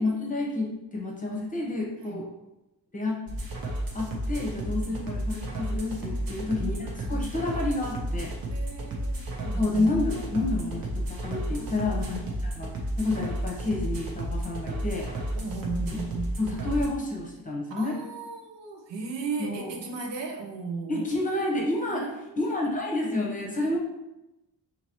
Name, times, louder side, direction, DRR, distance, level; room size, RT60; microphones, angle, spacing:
voice 1, 0.0-2.3 2.9-3.2 3.9-8.3 9.6-15.1 16.4-18.0 19.4-19.7 20.9-22.0 22.4-23.8, left 2 dB, 20° left, -3 dB, 0.9 m, -29 dB
sound 1, 3.3-16.9, right 1 dB, 55° right, 0.9 m, -32 dB
voice 2, 6.1-6.8 8.5-9.9 11.5-11.9 15.4-16.3 17.7-21.1 21.9-22.4, right 4 dB, 85° right, 1 dB, 0.8 m, -36 dB
5.6 x 2.9 x 3.0 m, 0.97 s
wide cardioid pair, 150°, 42 cm